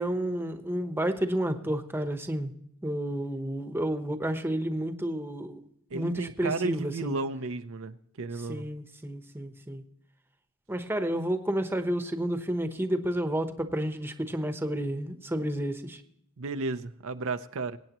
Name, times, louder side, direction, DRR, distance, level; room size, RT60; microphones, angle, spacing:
voice 1, 0.0-2.5 2.8-5.6 5.9-7.1 8.5-9.8 10.7-16.0, right 1 dB, 10° right, 7 dB, 1.0 m, -30 dB
voice 2, 5.9-8.7 16.4-17.8, right 3 dB, 65° right, 8 dB, 0.7 m, -33 dB
23.5 x 9.0 x 3.0 m, 0.72 s
head